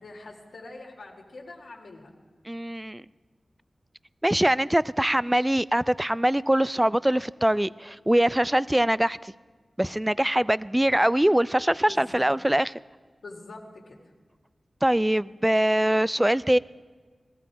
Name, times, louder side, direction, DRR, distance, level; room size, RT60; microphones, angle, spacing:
voice 1, 0.0-2.1 11.9-12.3 13.2-14.0, left 2 dB, 85° left, -2 dB, 1.9 m, -44 dB
voice 2, 2.5-3.0 4.2-9.3 9.8-12.7 14.8-16.6, right 1 dB, 15° right, 19 dB, 0.3 m, -23 dB
18.5 x 14.0 x 4.7 m, 1.4 s
cardioid pair, 55°, 0 cm